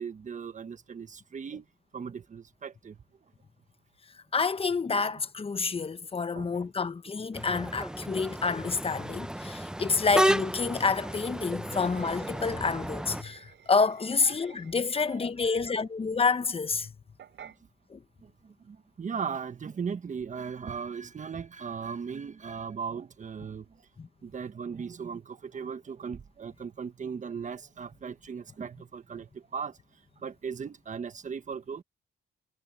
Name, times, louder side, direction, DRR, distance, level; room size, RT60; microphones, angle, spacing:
voice 1, 0.0-1.7 1.9-3.0 6.3-6.7 14.2-14.3 15.0-15.8 17.4-17.5 18.2-23.9 24.2-29.8 30.2-31.8, right 6 dB, 40° right, 1.4 m, -38 dB
voice 2, 4.3-16.9 17.9-18.0 24.0-24.1, left 4 dB, 30° left, 1.1 m, -28 dB
sound 1, 7.3-13.2, right 1 dB, 5° right, 0.7 m, -32 dB
sound 2, 10.9-15.2 17.2-17.6, right 9 dB, 70° right, 3.4 m, -53 dB
cardioid pair, 90°, 20 cm